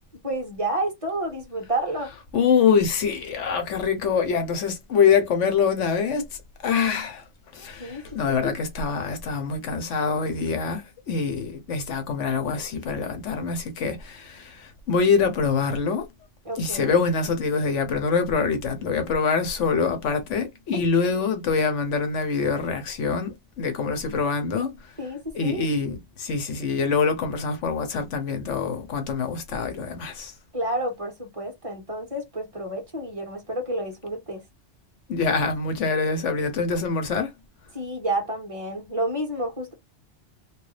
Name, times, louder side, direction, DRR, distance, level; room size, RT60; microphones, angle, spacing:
voice 1, 0.2-2.1 7.8-8.0 8.3-8.5 16.4-17.0 20.7-20.8 25.0-25.7 30.5-34.4 37.7-39.7, right 1 dB, 30° right, 1.5 m, -30 dB
voice 2, 2.3-6.3 6.6-7.2 7.5-16.1 16.6-24.7 25.3-30.3 35.1-37.3, left 5 dB, 80° left, 1.2 m, -25 dB
3.1 x 2.6 x 3.2 m
omnidirectional pair, 1.2 m